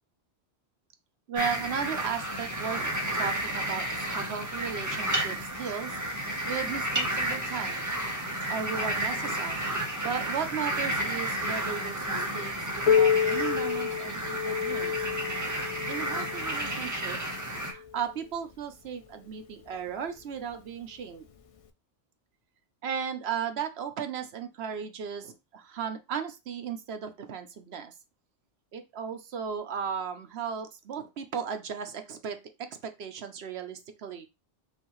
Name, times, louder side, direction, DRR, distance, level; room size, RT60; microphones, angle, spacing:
voice 1, 1.3-7.9 8.5-9.6 10.0-14.9 15.9-17.2 17.6-21.2 22.8-27.9 28.7-32.4 32.8-34.3, right 7 dB, 65° right, 7 dB, 0.9 m, -36 dB
sound 1, 1.4-17.7, right 1 dB, 15° right, 0.8 m, -32 dB
Piano, 12.9-18.2 19.0-19.1 19.6-19.7 20.5-20.6 21.6-21.7, left 7 dB, 60° left, 0.3 m, -28 dB
5.4 x 2.8 x 3.1 m, 0.25 s
omnidirectional pair, 1.2 m